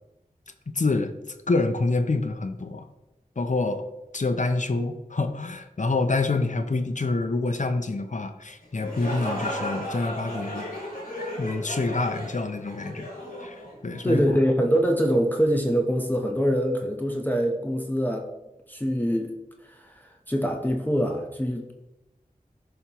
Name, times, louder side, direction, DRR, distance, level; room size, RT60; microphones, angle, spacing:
voice 1, 0.7-1.1 1.5-2.8 3.4-3.9 4.1-10.7 11.4-13.1 13.4-13.5 13.8-14.2, left 3 dB, 55° left, 8 dB, 0.7 m, -26 dB
sound 1, 8.6-14.3, equal, 80° left, 2.2 m, -35 dB
voice 2, 14.0-18.3 18.7-19.3 19.6-21.7, equal, 10° left, 2 dB, 1.0 m, -24 dB
11.0 x 5.3 x 3.0 m, 0.95 s
wide cardioid pair, 45°, 15 cm